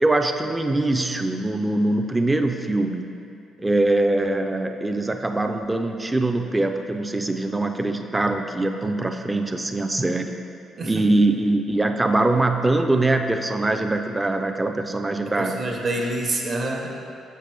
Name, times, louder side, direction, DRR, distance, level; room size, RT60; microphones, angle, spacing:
voice 1, 0.0-3.1 3.6-10.3 10.9-15.6, right 2 dB, 15° right, 5 dB, 0.3 m, -23 dB
voice 2, 15.3-16.9, right 2 dB, 45° right, 0 dB, 0.9 m, -27 dB
6.6 x 5.8 x 3.3 m, 2.6 s
cardioid pair, 115°, 0 cm